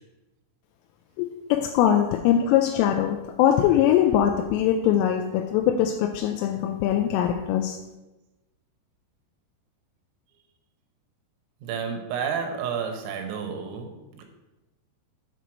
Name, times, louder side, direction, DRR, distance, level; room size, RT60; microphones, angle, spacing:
voice 1, 1.2-7.8, left 10 dB, 85° left, 4 dB, 2.9 m, -22 dB
voice 2, 11.6-14.2, right 6 dB, 80° right, 4 dB, 3.5 m, -31 dB
7.9 x 4.5 x 6.2 m, 1.0 s
omnidirectional pair, 6.0 m